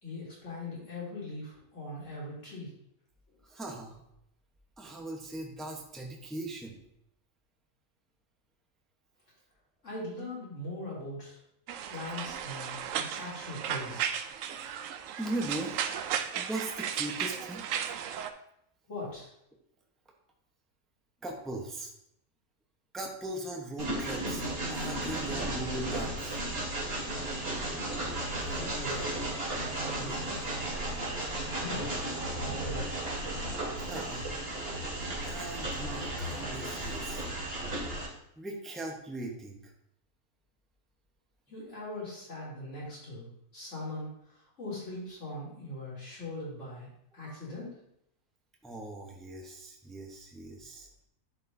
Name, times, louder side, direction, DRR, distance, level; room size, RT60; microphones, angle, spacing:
voice 1, 0.0-2.7 3.3-3.4 9.8-11.4 11.9-14.2 18.9-19.3 28.5-29.3 29.9-30.6 31.6-32.0 32.3-33.1 41.5-43.3 43.5-46.9 47.1-47.8, left 2 dB, 50° left, -7 dB, 3.3 m, -41 dB
voice 2, 3.4-4.0 4.8-6.8 15.2-15.7 16.3-17.6 21.2-21.9 22.9-24.4 24.7-26.4 29.3-29.5 33.7-34.4 35.2-37.2 38.4-39.7 47.2-47.4 48.6-50.9, right 1 dB, ahead, 0 dB, 0.7 m, -39 dB
sound 1, 11.7-18.3, right 8 dB, 70° right, 0.8 m, -35 dB
Train, 23.8-38.1, right 1 dB, 40° right, 2.3 m, -34 dB
11.0 x 4.8 x 2.7 m, 0.75 s
omnidirectional pair, 1.6 m